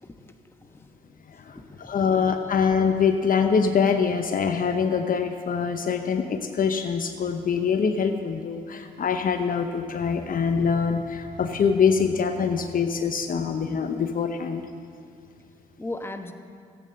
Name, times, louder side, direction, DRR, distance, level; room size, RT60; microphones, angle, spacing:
voice 1, 0.0-2.2 15.8-16.3, left 2 dB, 15° left, 6 dB, 1.2 m, -40 dB
voice 2, 1.8-14.6, left 6 dB, 55° left, 6 dB, 0.9 m, -24 dB
13.0 x 8.6 x 7.6 m, 2.3 s
supercardioid pair, 50°, 17 cm